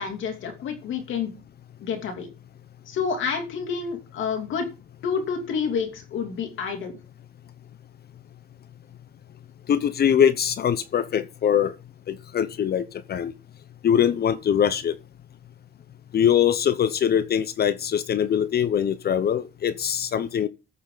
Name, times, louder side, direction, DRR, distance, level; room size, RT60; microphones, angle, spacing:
voice 1, 0.0-1.3 1.8-2.3 2.9-4.7 5.0-7.0, left 6 dB, 75° left, 2.9 m, -29 dB
voice 2, 9.7-11.7 12.1-13.3 13.8-15.0 16.1-20.5, left 9 dB, 55° left, 0.7 m, -22 dB
14.5 x 6.9 x 4.0 m
cardioid pair, 90°, 20 cm